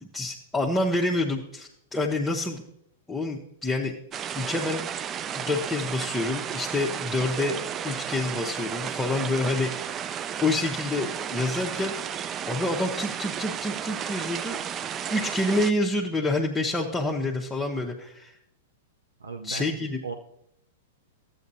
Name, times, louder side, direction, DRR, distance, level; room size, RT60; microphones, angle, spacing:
voice 1, 0.0-2.6 3.1-3.9 4.3-4.8 5.3-7.6 7.8-11.9 12.5-14.6 15.1-18.3 19.4-20.0, left 2 dB, 10° left, -2 dB, 0.9 m, -28 dB
sound 1, 4.1-15.7, right 8 dB, 25° right, 0.4 m, -33 dB
voice 2, 19.2-20.1, right 4 dB, 80° right, 4 dB, 0.7 m, -37 dB
13.0 x 8.6 x 2.8 m, 0.77 s
figure-of-eight pair, 105°, 0 cm